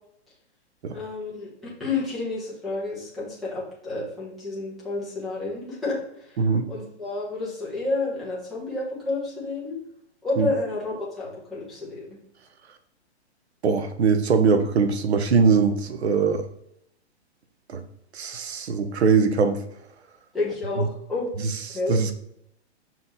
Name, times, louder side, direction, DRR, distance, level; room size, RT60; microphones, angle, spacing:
voice 1, 0.9-6.4 6.7-9.8 10.2-12.0 20.3-21.3 21.7-22.0, left 3 dB, ahead, -9 dB, 1.0 m, -30 dB
voice 2, 6.4-6.7 10.4-10.5 13.6-16.4 17.7-17.8 18.1-19.6 20.8-20.9 21.4-22.2, right 5 dB, 70° right, 8 dB, 1.0 m, -22 dB
5.6 x 4.6 x 4.0 m, 0.75 s
hypercardioid pair, 170°, 34 cm